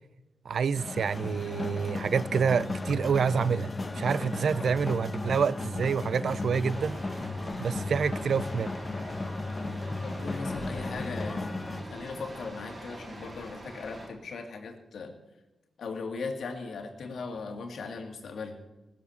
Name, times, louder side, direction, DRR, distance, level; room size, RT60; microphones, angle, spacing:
voice 1, 0.5-7.0 7.6-8.7, right 6 dB, 80° right, 0.4 m, -27 dB
sound 1, 0.7-11.8, left 2 dB, 30° left, 1.3 m, -35 dB
sound 2, 6.6-14.1, right 1 dB, 35° right, 4.4 m, -44 dB
voice 2, 10.0-11.4 11.9-15.2 15.8-18.6, left 4 dB, 85° left, 2.1 m, -38 dB
19.0 x 7.3 x 7.1 m
wide cardioid pair, 95°, 0 cm